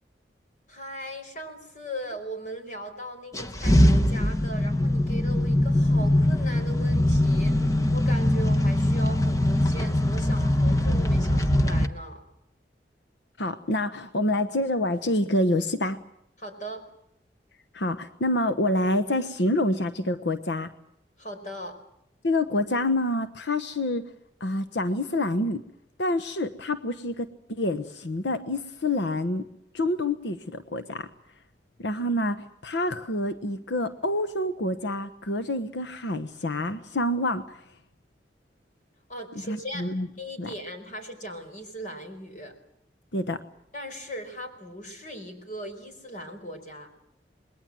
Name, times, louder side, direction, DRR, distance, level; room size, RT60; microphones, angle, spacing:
voice 1, 0.7-12.2 16.4-16.9 21.2-21.8 39.1-39.9 40.2-42.6 43.7-46.9, equal, 45° left, 5 dB, 5.0 m, -39 dB
sound 1, 3.3-11.9, left 1 dB, 20° left, 1.1 m, -22 dB
voice 2, 13.4-16.0 17.7-20.7 22.2-24.0 24.4-25.6 26.0-29.5 29.7-31.1 31.8-37.6 39.5-40.1 40.4-40.5 43.1-43.4, left 1 dB, 80° left, 10 dB, 1.1 m, -27 dB
27.5 x 21.0 x 7.7 m, 0.78 s
head